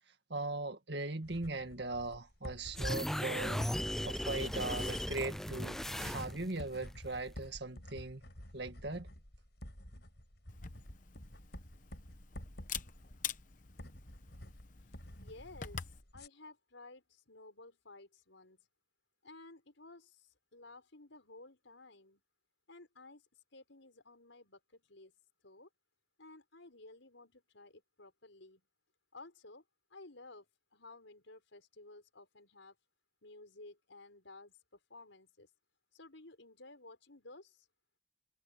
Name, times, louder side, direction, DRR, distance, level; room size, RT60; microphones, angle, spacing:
voice 1, 0.3-3.6 4.0-8.3 8.5-9.1, right 2 dB, 60° right, 2.0 m, -39 dB
sound 1, 1.2-16.3, equal, 60° left, 5.8 m, -51 dB
sound 2, 2.7-6.6, equal, ahead, 0.4 m, -37 dB
Camera, 10.5-16.0, left 8 dB, 45° left, 0.9 m, -46 dB
voice 2, 15.2-18.7 19.2-22.2 22.7-25.1 25.4-25.7 26.2-28.6 29.1-29.6 29.9-32.8 33.2-35.5 35.9-37.7, left 2 dB, 80° left, 5.2 m, -55 dB
head